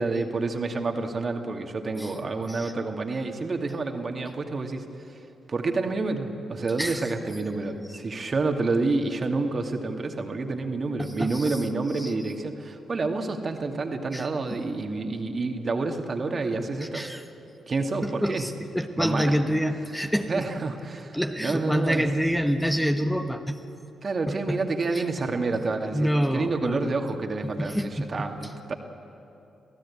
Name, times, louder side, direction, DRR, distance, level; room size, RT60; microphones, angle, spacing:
voice 1, 0.0-4.9 5.5-17.1 17.7-18.5 19.0-19.4 20.3-22.1 24.0-28.7, right 3 dB, 45° right, 4 dB, 2.3 m, -28 dB
voice 2, 6.8-7.1 11.0-11.6 11.9-12.1 14.1-14.2 16.9-17.2 18.0-20.4 21.1-23.6 24.3-24.6 24.9-25.0 25.9-27.0 27.4-28.3, equal, 5° left, 5 dB, 1.4 m, -27 dB
27.0 x 16.5 x 8.6 m, 2.8 s
hypercardioid pair, 40°, 0 cm